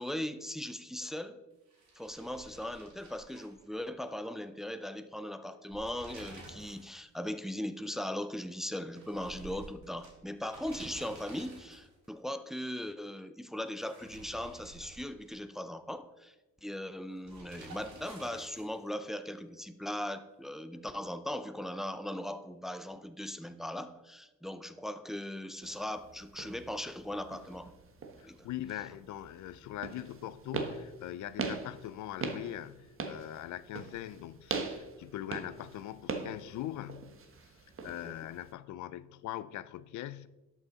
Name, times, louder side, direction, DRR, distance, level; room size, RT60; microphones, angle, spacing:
voice 1, 0.0-1.4 2.0-16.3 16.6-27.7 28.2-28.5 38.0-38.1, left 1 dB, ahead, 0.5 m, -39 dB
sound 1, 1.7-4.2 4.4-4.5 5.5-6.9 7.2-7.3 8.9-12.1 13.7-15.6 17.2-18.9, right 2 dB, 65° right, 3.3 m, -51 dB
sound 2, 25.6-38.5, right 4 dB, 45° right, 1.2 m, -41 dB
voice 2, 28.2-37.6 37.8-40.3, left 13 dB, 75° left, 0.5 m, -42 dB
11.5 x 5.9 x 4.0 m
cardioid pair, 90°, 30 cm